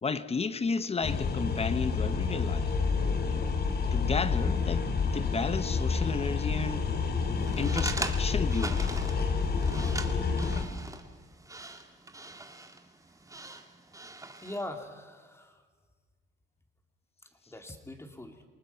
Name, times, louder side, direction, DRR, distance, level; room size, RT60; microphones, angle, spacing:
voice 1, 0.0-2.7 3.9-6.8 7.6-9.0, left 4 dB, 30° left, 1.0 m, -33 dB
sound 1, 1.0-10.6, left 5 dB, 55° left, 2.5 m, -29 dB
sound 2, 7.4-14.7, right 2 dB, 15° right, 2.0 m, -41 dB
voice 2, 14.4-15.6 17.5-18.4, left 1 dB, 15° left, 2.9 m, -41 dB
28.0 x 19.0 x 5.7 m
cardioid pair, 90°, 20 cm